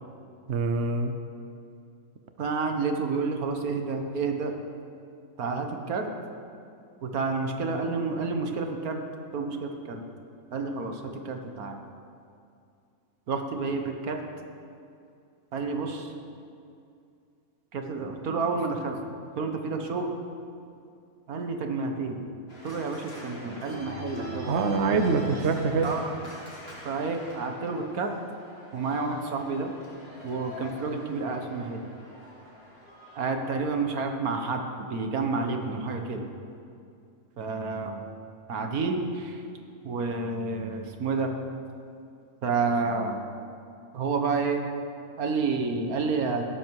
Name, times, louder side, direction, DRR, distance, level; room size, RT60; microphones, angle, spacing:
voice 1, 0.5-1.1 24.5-25.9, right 4 dB, 55° right, 6 dB, 1.1 m, -25 dB
voice 2, 2.4-4.5 5.4-6.1 7.0-9.0 9.3-10.0 10.5-11.0 11.3-11.8 13.3-14.2 15.5-16.1 17.7-19.0 19.4-20.1 21.3-22.2 22.6-24.6 25.8-26.1 26.9-28.1 28.7-29.7 30.2-31.8 33.2-34.6 34.9-36.2 37.4-38.0 38.5-39.4 39.9-41.3 42.4-43.2 43.9-44.6 45.2-46.5, right 4 dB, 85° right, 4 dB, 1.7 m, -29 dB
Organ, 22.5-33.2, left 1 dB, 45° left, 3.0 m, -42 dB
16.5 x 13.0 x 4.8 m, 2.5 s
omnidirectional pair, 1.5 m